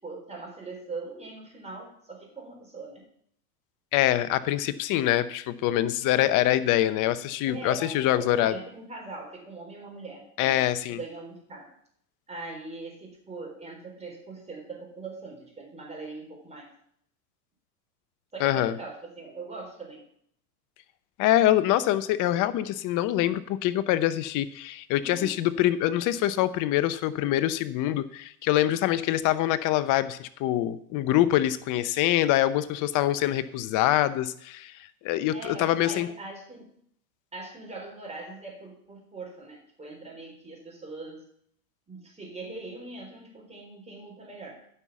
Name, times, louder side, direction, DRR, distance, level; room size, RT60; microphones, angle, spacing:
voice 1, 0.0-3.1 7.4-11.7 12.3-16.7 18.3-20.0 25.0-25.5 35.3-36.8 37.3-41.2 41.9-44.6, right 3 dB, 15° right, 0 dB, 4.0 m, -41 dB
voice 2, 3.9-8.5 10.4-11.0 18.4-18.7 21.2-36.1, left 13 dB, 40° left, 14 dB, 0.8 m, -25 dB
9.8 x 5.7 x 7.1 m, 0.66 s
hypercardioid pair, 105°, 47 cm